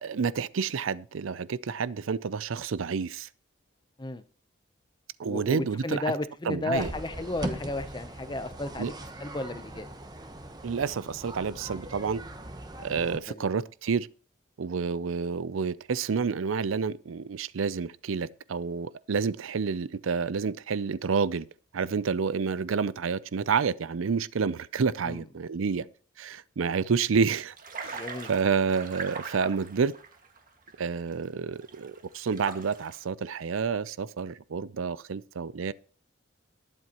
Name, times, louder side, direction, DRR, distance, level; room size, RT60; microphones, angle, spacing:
voice 1, 0.0-3.3 5.2-6.1 6.5-6.9 8.8-8.9 10.6-12.2 12.8-14.1 14.6-21.4 21.7-25.8 26.2-27.5 27.8-29.9 30.8-35.7, right 5 dB, 85° right, 0.5 m, -29 dB
voice 2, 5.3-8.9 9.2-9.9 13.3-13.4 25.0-25.2 25.7-25.8 27.9-28.3, left 2 dB, 20° left, 0.7 m, -33 dB
sound 1, 6.7-13.2, right 1 dB, 20° right, 1.0 m, -40 dB
sound 2, 27.5-31.2 31.6-33.0, right 4 dB, 45° right, 1.8 m, -41 dB
20.0 x 7.7 x 3.0 m
head